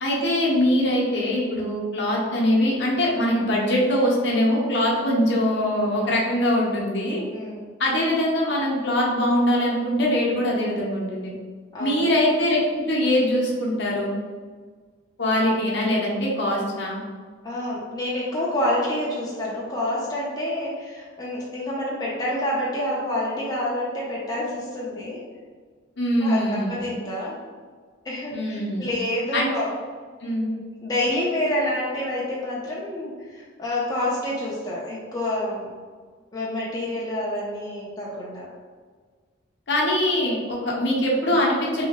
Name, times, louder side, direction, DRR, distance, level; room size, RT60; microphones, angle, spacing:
voice 1, 0.0-7.2 7.8-11.3 11.8-14.1 15.2-17.0 26.0-27.0 28.3-28.9 29.3-29.5 30.2-30.5 39.7-41.8, left 1 dB, 60° left, -4 dB, 0.7 m, -22 dB
voice 2, 7.3-7.6 11.7-12.1 17.4-25.2 26.2-27.4 28.0-29.7 30.3-35.7 36.3-38.5 41.3-41.4, left 1 dB, 20° left, -6 dB, 0.5 m, -28 dB
3.0 x 2.7 x 2.9 m, 1.5 s
head